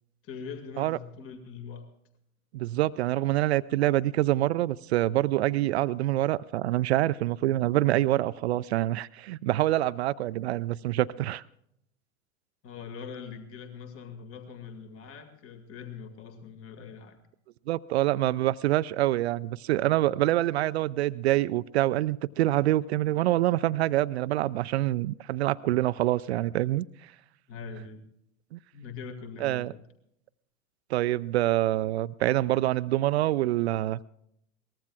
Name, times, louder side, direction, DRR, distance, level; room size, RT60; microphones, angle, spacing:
voice 1, 0.2-1.9 12.6-17.2 27.5-28.0 28.7-29.8, left 5 dB, 35° left, 2.0 m, -42 dB
voice 2, 2.5-11.4 17.7-27.1 28.5-28.6 29.4-29.7 30.9-34.0, right 15 dB, 50° right, 0.5 m, -26 dB
22.5 x 19.5 x 2.3 m
figure-of-eight pair, 90°, 42 cm